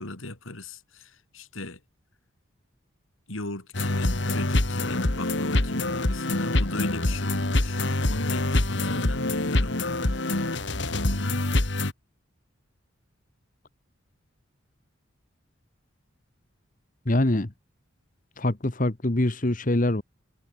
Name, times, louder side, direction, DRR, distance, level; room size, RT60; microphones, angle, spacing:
voice 1, 0.0-1.8 3.3-10.5 10.7-11.5, left 2 dB, 80° left, 3.4 m, -37 dB
sound 1, 3.7-11.9, left 2 dB, 60° left, 2.1 m, -25 dB
voice 2, 17.0-17.5 18.4-20.0, left 1 dB, 40° left, 1.3 m, -24 dB
head